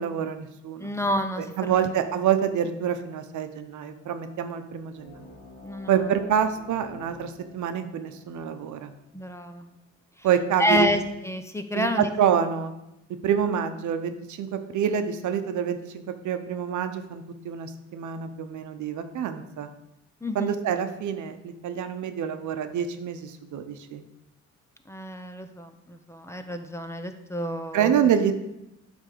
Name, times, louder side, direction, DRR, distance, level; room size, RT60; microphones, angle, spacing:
voice 1, 0.0-0.9 1.4-5.3 5.9-8.9 10.2-10.9 11.7-12.7 13.2-19.7 20.3-24.0 27.7-28.3, right 8 dB, 75° right, 9 dB, 0.9 m, -27 dB
voice 2, 0.8-1.9 5.6-6.0 9.1-9.7 10.6-12.1 20.2-20.5 24.9-27.9, left 1 dB, 10° left, 7 dB, 0.8 m, -29 dB
sound 1, 4.9-10.0, left 2 dB, 25° left, 2.5 m, -49 dB
8.8 x 3.6 x 6.7 m, 0.88 s
cardioid pair, 90°, 30 cm